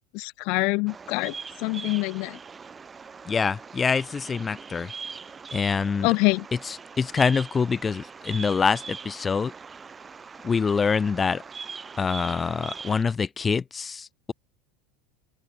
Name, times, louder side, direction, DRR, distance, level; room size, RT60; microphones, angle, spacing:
voice 1, 0.1-1.3 1.6-2.4 6.0-6.4, left 29 dB, 60° left, 0.9 m, -25 dB
Bird vocalization bird call bird song, 0.9-13.0, right 5 dB, 20° right, 2.2 m, -41 dB
voice 2, 3.3-4.9 5.5-6.1 6.6-9.5 10.4-11.4 12.0-14.3, left 5 dB, 20° left, 0.8 m, -25 dB
open air
supercardioid pair, 120°, 0 cm